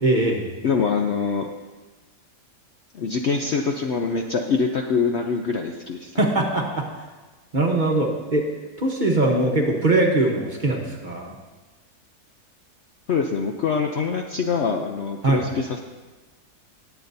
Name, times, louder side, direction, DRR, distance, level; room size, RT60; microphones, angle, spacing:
voice 1, 0.0-0.5 6.2-6.9 7.5-8.5 8.8-11.3 15.2-15.4, right 2 dB, 35° right, 0 dB, 1.1 m, -21 dB
voice 2, 0.6-1.5 2.9-6.2 13.1-15.8, left 5 dB, 60° left, 3 dB, 0.7 m, -24 dB
19.0 x 8.1 x 2.7 m, 1.2 s
omnidirectional pair, 1.7 m